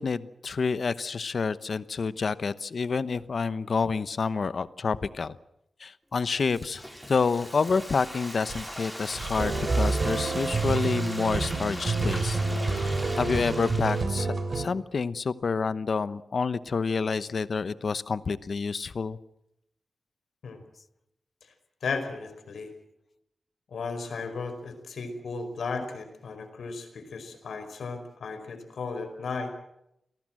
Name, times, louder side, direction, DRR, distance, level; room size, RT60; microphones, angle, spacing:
voice 1, 0.0-5.4 5.8-19.2, left 5 dB, 50° left, 15 dB, 0.9 m, -28 dB
Frying (food), 6.1-14.0, equal, ahead, 4.0 m, -40 dB
Breathing, 8.5-13.2, right 4 dB, 65° right, 3.2 m, -40 dB
sound 1, 9.4-14.6, right 3 dB, 45° right, 3.1 m, -28 dB
voice 2, 21.8-22.7 23.7-29.5, left 4 dB, 80° left, 8 dB, 4.9 m, -35 dB
28.5 x 18.5 x 7.6 m, 0.81 s
wide cardioid pair, 160°, 0 cm